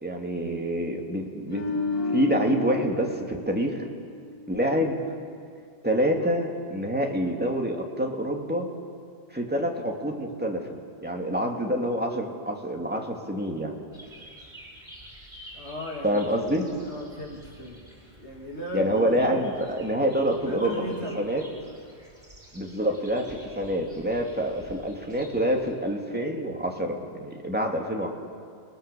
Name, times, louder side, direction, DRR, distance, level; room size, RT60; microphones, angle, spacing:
voice 1, 0.0-1.8 2.1-3.9 4.5-5.0 5.8-8.7 9.3-10.7 11.0-13.8 16.0-16.6 18.7-20.8 21.1-21.4 22.5-28.1, equal, 10° right, 1 dB, 2.3 m, -27 dB
sound 1, 1.5-4.8 5.1-5.3, left 3 dB, 30° left, 5.2 m, -32 dB
sound 2, 13.9-25.7, right 1 dB, 50° right, 5.8 m, -49 dB
voice 2, 15.6-16.2 16.6-17.8 18.2-19.4 20.4-21.3, equal, 70° left, 0 dB, 3.2 m, -37 dB
29.5 x 20.5 x 6.9 m, 2.2 s
omnidirectional pair, 1.2 m